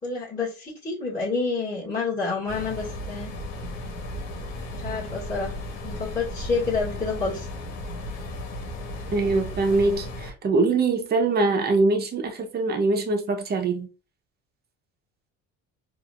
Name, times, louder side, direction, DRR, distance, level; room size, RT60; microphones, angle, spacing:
voice 1, 0.0-3.3 4.8-5.5 5.8-7.5, left 4 dB, 25° left, 2.2 m, -28 dB
sound 1, 2.5-10.3, left 1 dB, 80° left, 1.5 m, -35 dB
voice 2, 9.1-13.9, right 3 dB, 30° right, 1.0 m, -23 dB
4.6 x 2.8 x 2.6 m
cardioid pair, 125°, 31 cm